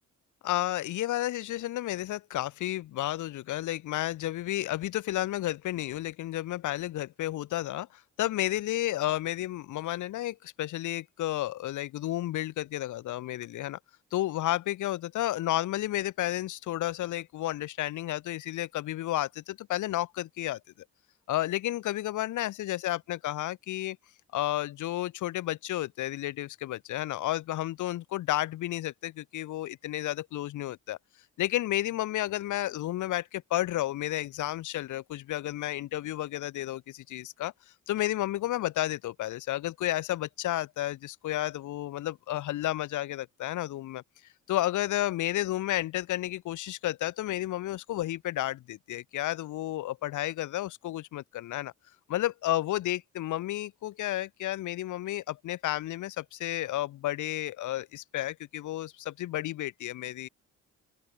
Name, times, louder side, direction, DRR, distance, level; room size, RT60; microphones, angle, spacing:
voice 1, 0.4-13.8 14.1-20.6 21.3-24.0 24.3-31.0 31.4-37.5 37.9-44.0 44.5-51.7 52.1-60.3, left 14 dB, 80° left, 1.4 m, -32 dB
open air
cardioid pair, 90°, 30 cm